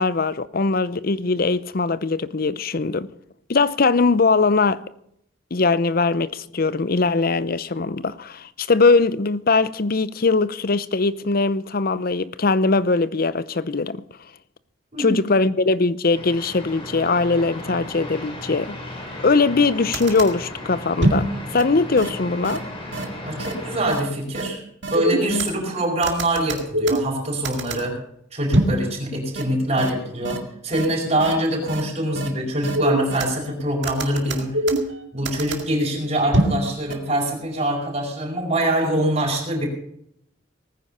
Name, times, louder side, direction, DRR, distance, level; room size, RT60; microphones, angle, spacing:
voice 1, 0.0-3.1 3.5-4.8 5.5-14.0 15.0-18.8 19.2-22.6, left 3 dB, 50° left, 0.6 m, -21 dB
sound 1, 16.1-23.9, left 1 dB, 30° left, 3.2 m, -35 dB
sound 2, 19.6-19.7 19.9-20.3 21.0-21.3 21.6-21.7 22.0-22.1 22.4-22.6 22.9-23.0 23.4-23.5 23.9-24.0 24.3-24.5 24.8-25.5 26.0-27.2 27.4-27.8 28.5-28.8 29.4-29.5 29.8-29.9 30.2-30.4 30.7-30.9 31.2-31.3 31.7-31.8 32.2-32.3 32.6-33.3 33.8-34.9 35.3-35.6 36.3-36.6 36.9-37.0, right 1 dB, 65° right, 2.1 m, -23 dB
voice 2, 23.2-24.6 24.9-27.9 28.3-30.4 30.6-34.6 35.1-39.7, right 1 dB, 35° right, 5.2 m, -24 dB
19.5 x 9.8 x 5.6 m
head